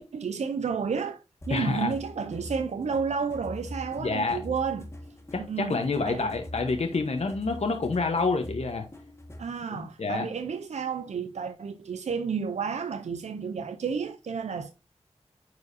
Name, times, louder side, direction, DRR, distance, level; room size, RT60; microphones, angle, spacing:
voice 1, 0.0-4.9 5.4-5.8 6.1-6.3 9.4-14.7, right 6 dB, 90° right, 0.5 m, -31 dB
sound 1, 1.4-9.6, left 1 dB, 25° left, 1.8 m, -43 dB
voice 2, 1.5-1.9 4.0-4.4 5.3-8.8 9.7-10.3, left 3 dB, 70° left, 1.0 m, -28 dB
9.5 x 4.7 x 2.7 m
cardioid pair, 45°, 11 cm